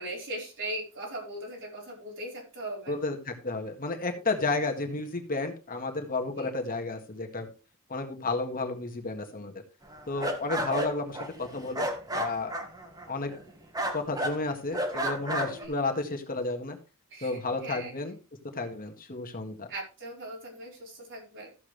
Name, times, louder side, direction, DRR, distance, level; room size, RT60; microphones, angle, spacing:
voice 1, 0.0-3.0 6.3-6.5 15.5-15.7 17.1-17.9 19.7-21.5, right 1 dB, 55° right, -2 dB, 4.9 m, -39 dB
voice 2, 2.9-7.5 7.9-9.6 10.1-11.9 12.1-12.5 13.1-13.3 13.9-16.8 17.2-18.2 18.5-19.7, left 3 dB, 40° left, 4 dB, 1.7 m, -32 dB
sound 1, 9.9-13.5 13.7-14.4 14.7-15.6, right 1 dB, 15° right, 1.9 m, -32 dB
14.0 x 7.3 x 3.3 m, 0.33 s
head